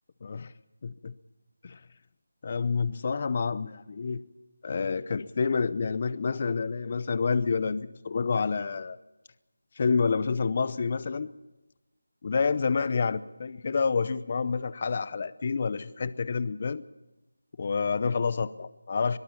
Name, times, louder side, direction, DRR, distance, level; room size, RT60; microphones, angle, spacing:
voice 1, 0.2-0.5 0.8-1.1 1.6-1.8 2.4-4.2 4.6-9.0 9.8-11.3 12.2-16.8 17.6-19.2, left 5 dB, 35° left, 17 dB, 0.7 m, -28 dB
22.0 x 14.0 x 8.7 m, 1.0 s
figure-of-eight pair, 170°, 0 cm